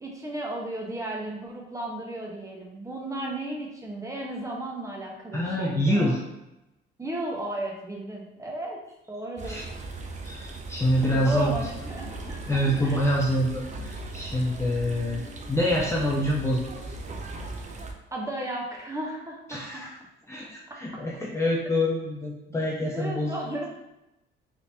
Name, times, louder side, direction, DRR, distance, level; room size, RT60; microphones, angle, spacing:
voice 1, 0.0-6.2 7.0-8.8 9.1-9.7 11.1-13.0 18.1-19.8 20.7-21.0 22.9-23.6, right 1 dB, 15° right, -2 dB, 0.8 m, -34 dB
voice 2, 5.3-6.2 9.4-9.6 10.2-11.7 12.5-15.2 15.5-16.9 19.5-19.9 20.3-23.4, equal, 15° left, -4 dB, 0.5 m, -26 dB
sound 1, 9.4-17.9, right 2 dB, 35° right, 0.5 m, -38 dB
3.4 x 2.8 x 2.6 m, 0.90 s
cardioid pair, 90°, 20 cm